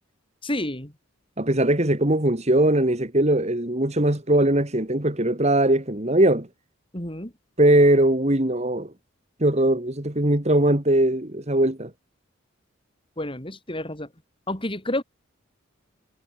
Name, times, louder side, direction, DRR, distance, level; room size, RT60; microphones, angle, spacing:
voice 1, 0.4-0.9 6.9-7.3 13.2-14.1 14.5-15.0, left 1 dB, 25° left, 5.2 m, -29 dB
voice 2, 1.4-6.5 7.6-8.9 9.4-11.9, right 1 dB, 35° right, 2.2 m, -20 dB
head